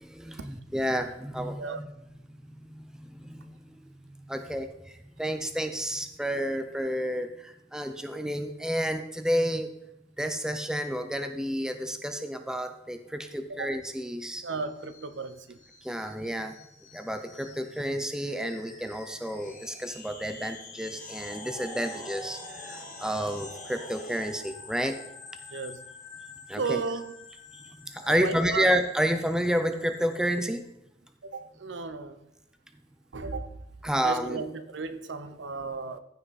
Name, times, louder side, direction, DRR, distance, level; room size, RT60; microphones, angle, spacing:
voice 1, 0.0-1.9 2.6-3.8 4.3-9.7 10.2-14.4 15.8-16.6 16.9-25.0 26.5-26.8 27.5-30.6 33.8-34.5, equal, 5° right, 0.5 m, -30 dB
sound 1, 14.4-30.6, left 3 dB, 40° left, 2.2 m, -47 dB
voice 2, 14.4-15.6 25.5-25.8 26.6-27.1 28.0-28.7 31.2-32.2 33.1-33.6 34.0-36.0, right 4 dB, 65° right, 0.7 m, -34 dB
14.5 x 5.7 x 4.1 m
head